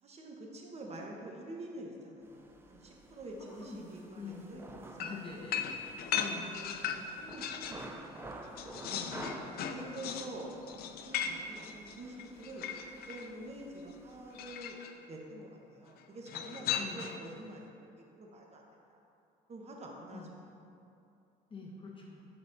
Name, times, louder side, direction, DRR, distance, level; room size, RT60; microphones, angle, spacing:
voice 1, 0.0-5.3 6.2-8.5 9.6-10.6 11.0-12.7 13.1-14.8 15.1-17.6 18.0-19.0 19.5-20.5, right 1 dB, 40° right, 0 dB, 1.0 m, -47 dB
sound 1, 2.2-14.6, right 2 dB, 15° right, 0.5 m, -51 dB
voice 2, 3.6-4.4 5.0-5.7 6.1-6.5 8.9-9.1 16.8-17.0 20.1-20.3 21.5-22.3, left 4 dB, 30° left, -3 dB, 1.0 m, -45 dB
sound 2, 5.0-7.9 8.2-13.3 14.3-14.9 16.3-17.3, left 8 dB, 65° left, 0.4 m, -38 dB
11.0 x 4.0 x 2.6 m, 2.7 s
cardioid pair, 110°, 17 cm